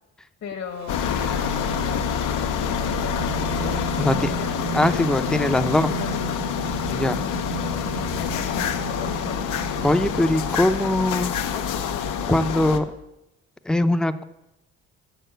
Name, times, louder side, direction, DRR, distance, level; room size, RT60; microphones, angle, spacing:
voice 1, 0.4-2.5 3.2-6.4 6.8-7.0 8.1-9.5, left 6 dB, 60° left, 2 dB, 1.4 m, -37 dB
Singing, 0.7-11.2, right 5 dB, 65° right, 1.2 m, -35 dB
sound 1, 0.9-12.8, left 7 dB, 85° left, 0.9 m, -27 dB
voice 2, 4.0-4.3 4.7-6.0 6.9-7.2 9.8-11.3 11.9-12.9 13.6-14.2, left 1 dB, ahead, 11 dB, 0.5 m, -22 dB
7.3 x 6.7 x 7.8 m, 0.92 s
cardioid pair, 90°, 30 cm